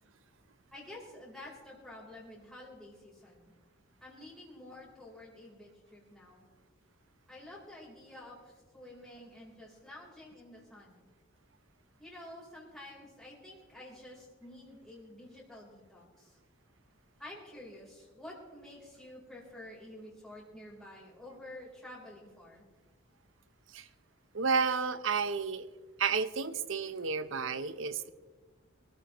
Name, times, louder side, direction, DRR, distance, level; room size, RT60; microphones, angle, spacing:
voice 1, 0.7-3.5 4.0-6.4 7.3-8.4 8.7-11.1 12.0-16.4 17.2-22.6, left 1 dB, ahead, -6 dB, 3.8 m, -50 dB
voice 2, 24.3-25.7 26.0-28.1, right 5 dB, 75° right, 13 dB, 0.8 m, -31 dB
24.5 x 13.5 x 3.1 m, 1.3 s
head